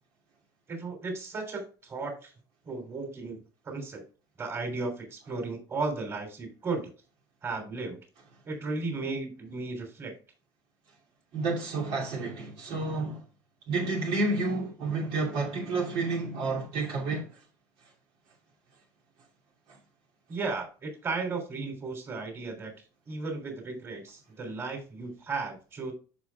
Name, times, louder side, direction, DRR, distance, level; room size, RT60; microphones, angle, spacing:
voice 1, 0.7-2.3 2.6-3.4 3.6-4.0 4.4-6.9 7.4-8.0 8.4-10.1 20.3-22.7 23.1-25.9, right 3 dB, 30° right, 3.3 m, -35 dB
voice 2, 11.3-13.2 13.7-17.3, right 3 dB, 65° right, 2.6 m, -30 dB
13.5 x 5.3 x 2.3 m
cardioid pair, 135°, 9 cm